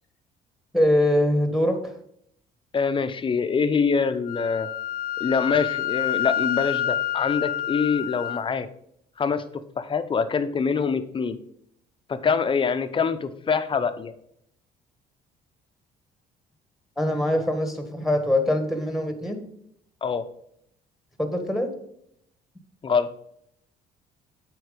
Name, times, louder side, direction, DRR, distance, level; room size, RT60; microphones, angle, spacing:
voice 1, 0.7-1.9 17.0-19.4 21.2-21.7, left 1 dB, ahead, 6 dB, 1.6 m, -23 dB
voice 2, 2.7-4.7 5.2-8.7 9.2-9.4 9.8-11.4 12.1-14.1 20.0-20.3 22.8-23.1, left 5 dB, 30° left, 10 dB, 0.7 m, -24 dB
Wind instrument woodwind instrument, 4.3-8.4, left 11 dB, 60° left, 0.4 m, -28 dB
7.9 x 4.6 x 5.1 m, 0.71 s
cardioid pair, 110°, 17 cm